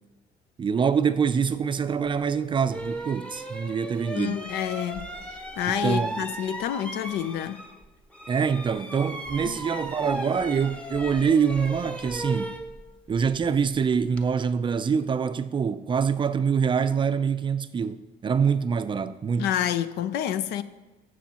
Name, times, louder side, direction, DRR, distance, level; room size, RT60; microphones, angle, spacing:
voice 1, 0.6-4.5 5.8-6.2 8.3-12.6 13.1-19.5, right 6 dB, 30° right, 0.4 m, -25 dB
sound 1, 2.1-2.2 2.7-7.9 8.1-14.3, right 1 dB, 5° left, 0.8 m, -36 dB
voice 2, 4.1-7.6 9.4-9.6 19.4-20.6, left 10 dB, 80° left, 0.5 m, -29 dB
15.0 x 6.3 x 2.9 m
cardioid pair, 110°, 17 cm